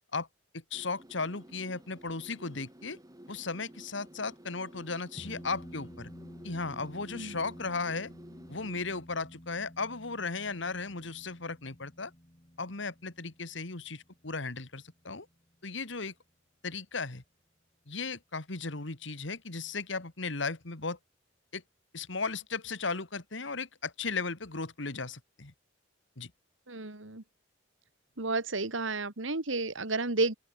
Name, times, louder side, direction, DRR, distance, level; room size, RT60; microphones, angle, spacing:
voice 1, 0.5-3.0 3.3-6.1 6.4-8.1 8.5-12.1 12.6-15.3 15.6-16.1 16.6-17.2 17.9-21.0 21.5-21.6 21.9-25.5 26.2-26.3, left 4 dB, 70° left, 2.1 m, -36 dB
sound 1, 0.7-8.8, right 1 dB, 20° right, 2.6 m, -52 dB
sound 2, 5.2-15.9, equal, 30° left, 4.3 m, -52 dB
voice 2, 26.7-27.2 28.2-30.3, right 3 dB, 85° right, 2.5 m, -31 dB
open air
head